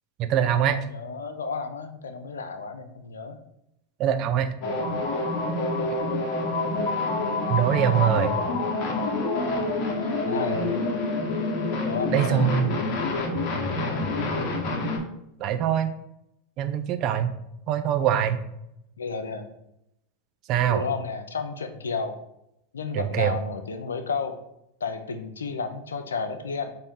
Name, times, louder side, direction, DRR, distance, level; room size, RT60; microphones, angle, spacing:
voice 1, 0.2-0.8 4.0-4.5 7.5-8.3 12.1-12.8 15.4-15.9 16.6-17.3 17.7-18.4 20.5-20.8 22.9-23.4, right 9 dB, 45° right, 9 dB, 0.5 m, -23 dB
voice 2, 0.7-3.4 4.6-5.0 10.2-11.0 11.8-12.5 13.8-14.2 19.0-19.5 20.7-22.2 22.7-24.4 24.8-26.7, left 4 dB, 90° left, 8 dB, 0.5 m, -32 dB
sound 1, 4.6-15.0, left 2 dB, 55° left, 0.9 m, -27 dB
4.1 x 2.6 x 3.6 m, 0.83 s
hypercardioid pair, 100°, 0 cm